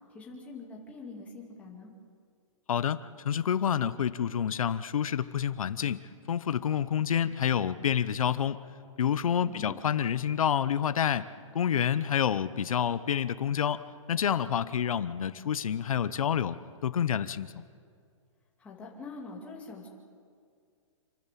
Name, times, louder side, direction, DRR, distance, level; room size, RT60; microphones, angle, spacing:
voice 1, 0.1-1.9 9.4-9.7 18.6-19.9, left 3 dB, 10° left, -2 dB, 2.3 m, -44 dB
voice 2, 2.7-6.0 6.3-8.6 9.0-11.3 11.5-13.8 14.1-16.6 16.8-17.5, left 8 dB, 90° left, 14 dB, 0.8 m, -28 dB
28.0 x 12.5 x 7.5 m, 2.2 s
hypercardioid pair, 175°, 17 cm